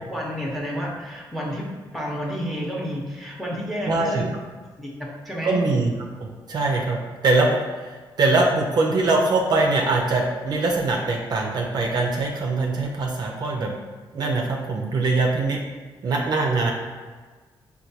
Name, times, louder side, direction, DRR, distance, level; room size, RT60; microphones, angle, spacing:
voice 1, 0.1-4.3 4.8-5.6, equal, ahead, -2 dB, 0.7 m, -30 dB
voice 2, 3.9-4.2 5.4-5.9 6.2-7.0 7.2-13.7 14.1-15.6 16.0-16.7, right 3 dB, 50° right, 0 dB, 0.4 m, -22 dB
4.4 x 2.2 x 2.7 m, 1.4 s
cardioid pair, 95°, 9 cm